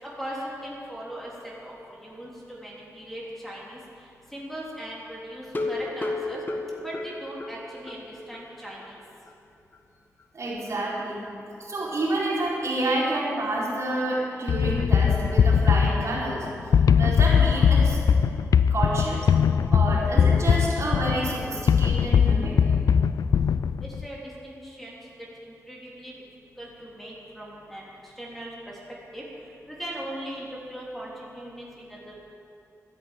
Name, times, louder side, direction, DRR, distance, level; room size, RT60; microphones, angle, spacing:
voice 1, 0.0-1.3 1.6-1.7 2.0-3.8 4.3-6.4 6.8-9.0 23.8-25.0 25.4-26.1 26.6-28.8 29.1-29.2 29.7-32.1, right 1 dB, 5° left, -5 dB, 3.4 m, -39 dB
sound 1, 5.4-8.0 8.3-8.4 8.8-8.9 9.3-9.4, left 2 dB, 35° left, 1.5 m, -32 dB
voice 2, 10.3-11.2 11.6-16.5 16.9-18.0 18.7-19.3 19.7-22.6, right 1 dB, 55° right, -6 dB, 4.6 m, -28 dB
sound 2, 14.5-24.0, left 7 dB, 85° left, 0.4 m, -21 dB
12.5 x 10.5 x 9.1 m, 2.5 s
wide cardioid pair, 100°, 6 cm